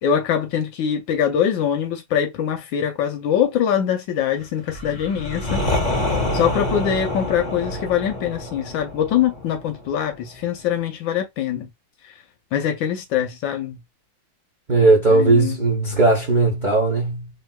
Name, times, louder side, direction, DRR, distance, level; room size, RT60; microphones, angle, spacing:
voice 1, 0.0-5.7 6.3-11.7 12.5-13.8 15.1-15.6, left 9 dB, 70° left, 1.2 m, -23 dB
sound 1, 4.7-10.4, left 1 dB, 30° left, 0.8 m, -27 dB
voice 2, 14.7-17.3, right 3 dB, 90° right, 0.4 m, -17 dB
3.2 x 2.9 x 2.2 m
omnidirectional pair, 2.4 m